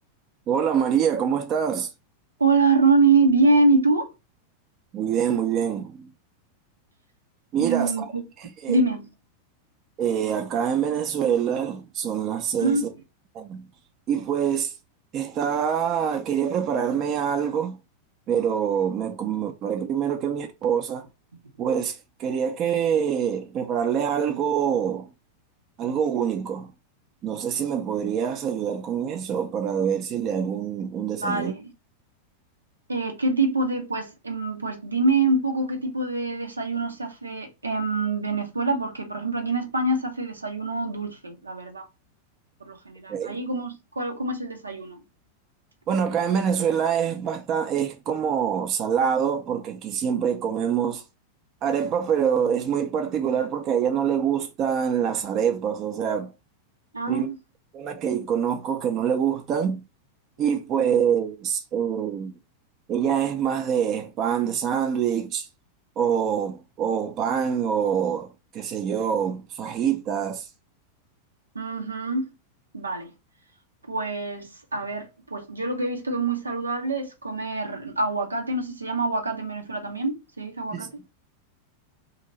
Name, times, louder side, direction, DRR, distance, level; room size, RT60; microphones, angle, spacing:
voice 1, 0.5-1.9 4.9-6.1 7.5-8.0 8.6-8.8 10.0-12.9 13.3-13.6 14.1-14.7 15.1-17.8 18.3-21.0 21.6-25.1 25.8-26.7 27.2-31.5 43.1-43.4 45.9-51.0 51.6-56.3 57.1-57.3 57.7-59.8 60.4-62.3 62.9-65.4 66.0-68.3 68.5-70.4 80.7-80.9, right 8 dB, 35° right, 0.6 m, -25 dB
voice 2, 2.4-4.1 7.6-8.3 8.7-9.1 12.6-12.8 31.2-31.7 32.9-41.9 42.6-45.1 56.9-57.4 71.5-72.3 72.7-73.1 73.9-80.9, right 3 dB, 80° right, 0.7 m, -25 dB
2.9 x 2.7 x 3.9 m
figure-of-eight pair, 90°, 0 cm